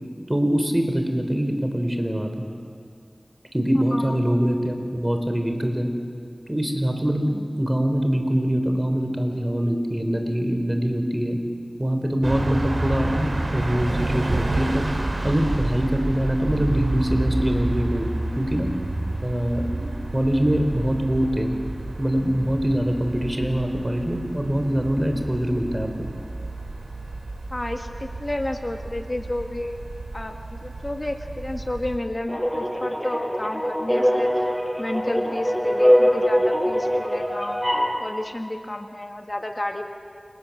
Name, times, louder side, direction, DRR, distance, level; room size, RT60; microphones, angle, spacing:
voice 1, 0.3-2.5 3.5-5.9 6.5-11.4 11.8-14.9 15.2-18.7 19.2-19.9 20.1-21.6 22.0-26.1, equal, 20° right, 5 dB, 4.2 m, -23 dB
voice 2, 3.9-4.3 27.5-29.8 30.1-34.5 34.8-39.8, left 1 dB, 40° left, 4 dB, 1.8 m, -31 dB
sound 1, 12.2-32.0, right 2 dB, 65° right, 4.0 m, -30 dB
sound 2, 32.3-38.0, equal, 5° right, 5.3 m, -22 dB
29.0 x 27.0 x 7.4 m, 2.2 s
wide cardioid pair, 45°, 0 cm